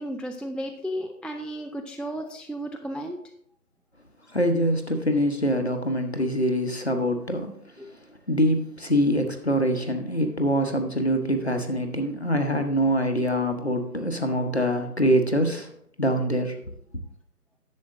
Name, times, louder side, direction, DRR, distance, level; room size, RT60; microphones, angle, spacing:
voice 1, 0.0-3.2 7.8-7.9, equal, ahead, 3 dB, 0.4 m, -33 dB
voice 2, 4.3-7.5 8.3-15.7 16.0-16.5, equal, 40° left, 6 dB, 1.0 m, -24 dB
10.5 x 7.7 x 3.7 m, 0.69 s
figure-of-eight pair, 165°, 49 cm